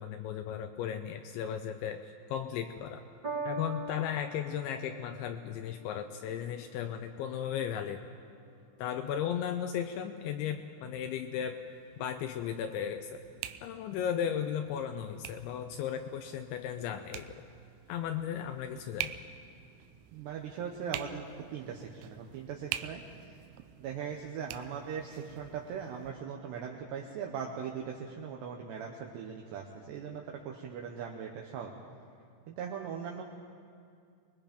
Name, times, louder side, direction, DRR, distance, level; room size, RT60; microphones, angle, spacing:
voice 1, 0.0-3.0 3.5-8.0 8.8-11.6 12.0-13.2 13.6-17.3 17.9-19.2, left 9 dB, 80° left, 6 dB, 2.8 m, -35 dB
Piano, 3.2-9.8 10.6-10.7, right 2 dB, 40° right, 1.6 m, -44 dB
sound 1, 11.0-26.1, right 12 dB, 90° right, 3.3 m, -46 dB
voice 2, 20.1-21.3 21.5-23.0 23.8-31.8 32.5-33.2, right 7 dB, 75° right, 1 dB, 2.8 m, -40 dB
26.0 x 20.5 x 5.2 m, 2.3 s
omnidirectional pair, 5.7 m